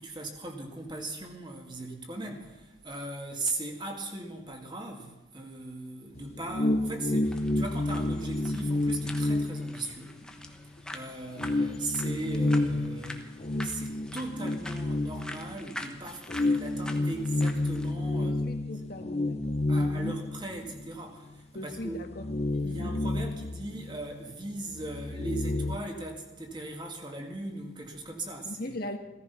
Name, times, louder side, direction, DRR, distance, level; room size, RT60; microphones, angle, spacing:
voice 1, 0.0-10.2 10.9-13.3 13.6-18.4 19.7-22.0 22.7-28.7, right 2 dB, 25° right, 2.1 m, -38 dB
sound 1, 6.2-10.5 10.8-10.9 11.4-15.8 16.3-21.0 21.3-21.4 21.8-24.3 24.6-25.8, left 2 dB, 30° left, 0.6 m, -30 dB
sound 2, 7.2-17.9, left 1 dB, 5° left, 1.1 m, -45 dB
voice 2, 18.2-20.1 21.5-22.3 22.6-22.9 28.4-29.0, left 1 dB, 50° left, 1.5 m, -39 dB
16.5 x 14.5 x 5.7 m
head